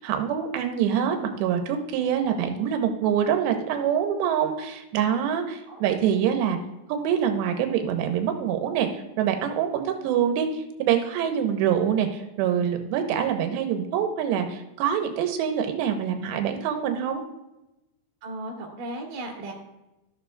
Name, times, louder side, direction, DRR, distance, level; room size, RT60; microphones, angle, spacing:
voice 1, 0.0-6.6 6.9-17.2, right 8 dB, 90° right, 5 dB, 2.9 m, -25 dB
voice 2, 18.2-19.5, right 1 dB, 60° right, -1 dB, 3.0 m, -36 dB
14.0 x 6.9 x 2.3 m, 0.95 s
omnidirectional pair, 4.9 m